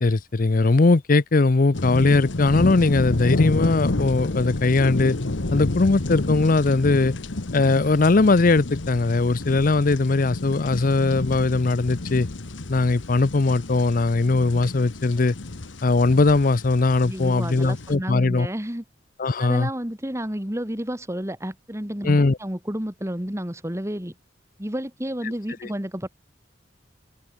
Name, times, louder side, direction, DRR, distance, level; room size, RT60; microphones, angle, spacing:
voice 1, 0.0-5.2 5.5-7.1 7.5-12.3 12.7-15.3 15.8-18.5 19.2-19.7 22.0-22.4, left 3 dB, 45° left, 0.6 m, -20 dB
sound 1, 1.7-17.9, left 2 dB, 85° left, 1.3 m, -30 dB
voice 2, 17.0-18.8 19.4-24.1 24.6-26.1, equal, 15° right, 2.5 m, -31 dB
open air
head